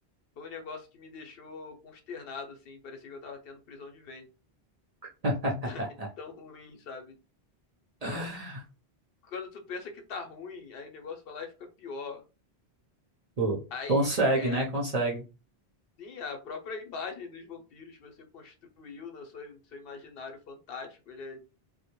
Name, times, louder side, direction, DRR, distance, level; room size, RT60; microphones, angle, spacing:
voice 1, 0.4-4.2 5.6-5.8 6.2-7.1 8.0-8.3 9.2-11.5 11.8-12.2 13.7-14.0 14.3-14.6 16.0-21.4, left 5 dB, 70° left, 5 dB, 0.8 m, -42 dB
voice 2, 5.2-6.1 8.0-8.6 13.4-13.6 13.9-15.2, right 1 dB, 45° right, -1 dB, 0.6 m, -28 dB
2.1 x 2.1 x 2.9 m, 0.31 s
omnidirectional pair, 1.1 m